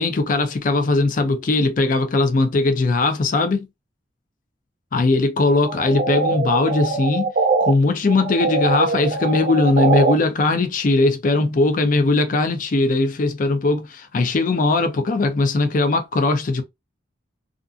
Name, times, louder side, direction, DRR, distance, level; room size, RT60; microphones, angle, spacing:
voice 1, 0.0-3.7 4.9-7.3 7.6-16.6, left 2 dB, 45° left, 0.4 m, -19 dB
sound 1, 5.6-7.7 8.1-10.1, right 3 dB, 45° right, 0.5 m, -22 dB
2.4 x 2.3 x 2.4 m
head